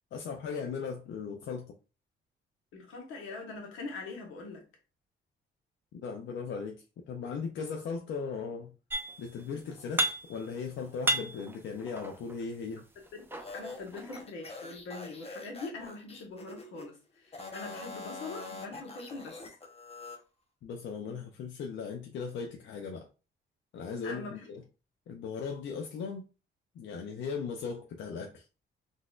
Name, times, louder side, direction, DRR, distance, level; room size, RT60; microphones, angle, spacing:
voice 1, 0.1-1.8 5.9-8.7 9.2-12.8 20.6-23.1 23.7-24.6 25.1-26.2 26.7-28.5, left 5 dB, 70° left, 0.5 m, -38 dB
voice 2, 2.7-4.6 13.1-17.0 17.3-19.4 24.0-24.4, left 3 dB, 85° left, 1.2 m, -42 dB
sound 1, 8.9-9.4 9.7-10.6 10.9-12.4 13.1-14.2, right 1 dB, 10° right, 0.6 m, -33 dB
sound 2, 13.4-16.9 17.3-20.2, left 3 dB, 30° left, 0.9 m, -44 dB
3.8 x 2.5 x 2.4 m
cardioid pair, 90°, 20 cm